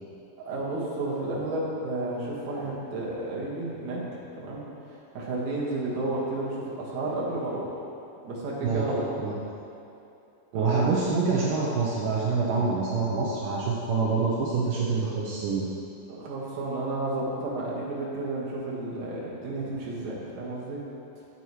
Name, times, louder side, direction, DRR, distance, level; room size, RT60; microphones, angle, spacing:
voice 1, 0.4-4.0 4.4-4.6 5.1-7.8 8.2-9.1 10.5-10.8 16.1-20.8, right 2 dB, 55° right, -5 dB, 2.4 m, -31 dB
voice 2, 10.5-15.7, right 4 dB, 75° right, -5 dB, 2.0 m, -26 dB
15.0 x 7.0 x 3.2 m, 2.8 s
omnidirectional pair, 4.9 m